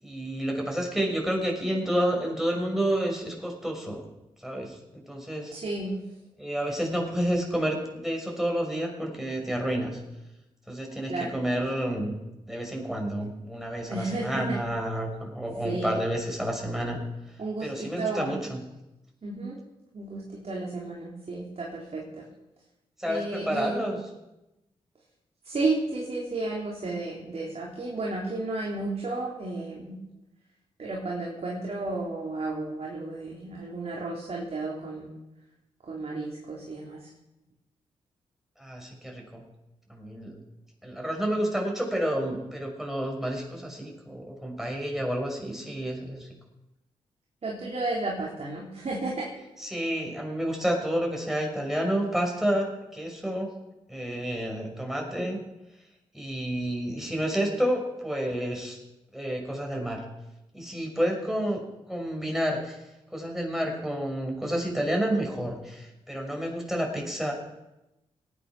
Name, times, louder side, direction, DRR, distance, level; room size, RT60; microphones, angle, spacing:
voice 1, 0.0-4.0 4.4-5.5 6.4-10.0 10.7-12.2 12.5-17.0 17.6-18.6 23.0-24.1 38.6-39.4 39.9-40.4 40.8-46.3 49.6-53.5 53.9-55.4 56.1-58.8 59.1-60.0 60.5-62.8 63.1-67.3, equal, ahead, 0 dB, 6.2 m, -30 dB
voice 2, 5.5-5.9 11.1-11.4 13.8-14.6 15.6-16.0 17.4-18.3 19.2-19.6 19.9-22.2 23.1-23.9 25.4-30.0 30.8-35.1 35.8-37.1 47.4-49.3, right 2 dB, 50° right, -3 dB, 3.9 m, -32 dB
18.5 x 9.3 x 6.2 m, 0.97 s
supercardioid pair, 40°, 13 cm